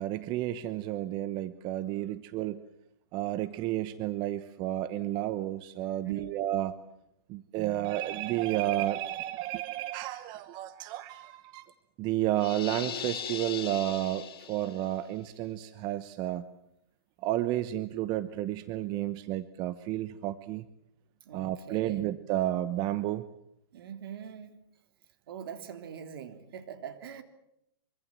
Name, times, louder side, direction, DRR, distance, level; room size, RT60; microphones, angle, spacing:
voice 1, 0.0-2.6 3.1-6.7 7.3-11.7 12.0-16.5 17.2-20.7 21.3-23.3, right 14 dB, 35° right, 13 dB, 1.1 m, -31 dB
voice 2, 6.0-6.4 21.3-22.1 23.7-24.6 25.3-27.2, right 8 dB, 65° right, 7 dB, 3.6 m, -42 dB
sound 1, 12.4-14.9, left 9 dB, 65° left, 5.4 m, -39 dB
25.5 x 24.0 x 7.6 m, 0.80 s
hypercardioid pair, 130°, 13 cm